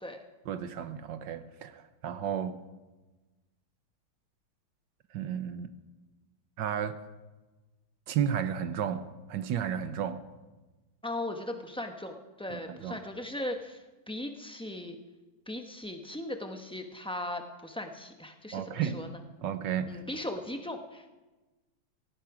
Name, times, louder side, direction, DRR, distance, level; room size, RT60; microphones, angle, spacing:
voice 1, 0.5-2.6 5.1-5.7 6.6-7.0 8.1-10.2 12.5-13.0 18.5-19.1 19.4-20.0, right 8 dB, 70° right, 11 dB, 1.4 m, -33 dB
voice 2, 11.0-15.0 15.5-19.2 19.9-21.1, left 1 dB, 5° left, 4 dB, 0.7 m, -38 dB
17.0 x 16.5 x 4.9 m, 1.2 s
omnidirectional pair, 2.2 m